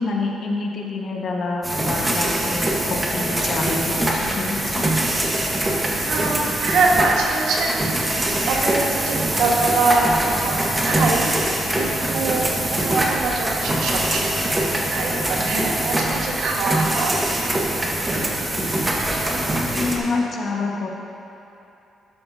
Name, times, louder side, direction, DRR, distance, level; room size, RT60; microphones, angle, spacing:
voice 1, 0.0-4.8 12.3-12.7 18.5-19.0 19.6-20.9, left 3 dB, 55° left, -1 dB, 1.5 m, -27 dB
sound 1, 1.6-20.0, right 1 dB, 20° right, 1.5 m, -23 dB
voice 2, 6.1-17.3, right 3 dB, 80° right, -2 dB, 1.6 m, -24 dB
12.5 x 11.0 x 2.8 m, 2.9 s
cardioid pair, 90°, 0 cm